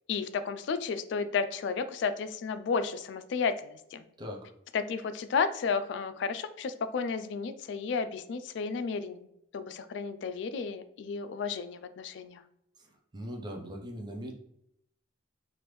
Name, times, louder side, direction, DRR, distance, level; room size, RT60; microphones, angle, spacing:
voice 1, 0.1-4.1 4.7-9.3 9.5-12.4, left 5 dB, 65° left, 11 dB, 0.3 m, -32 dB
voice 2, 4.2-4.5 13.1-14.3, equal, 25° right, 1 dB, 0.5 m, -39 dB
3.3 x 2.5 x 3.0 m, 0.76 s
head